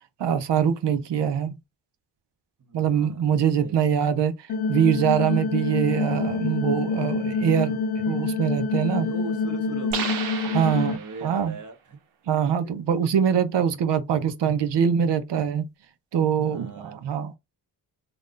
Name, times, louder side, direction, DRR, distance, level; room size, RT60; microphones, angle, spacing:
voice 1, 0.2-1.6 2.7-9.1 10.4-11.6 12.3-15.7 16.1-17.4, right 8 dB, 65° right, 0.7 m, -24 dB
voice 2, 2.6-4.2 8.8-10.1 10.5-12.0 12.6-12.7 16.4-17.0, right 4 dB, 40° right, 1.2 m, -41 dB
sound 1, 4.5-11.0, left 4 dB, 55° left, 0.5 m, -27 dB
sound 2, 9.9-11.5, right 6 dB, 85° right, 0.9 m, -33 dB
3.4 x 2.4 x 2.5 m
supercardioid pair, 50°, 46 cm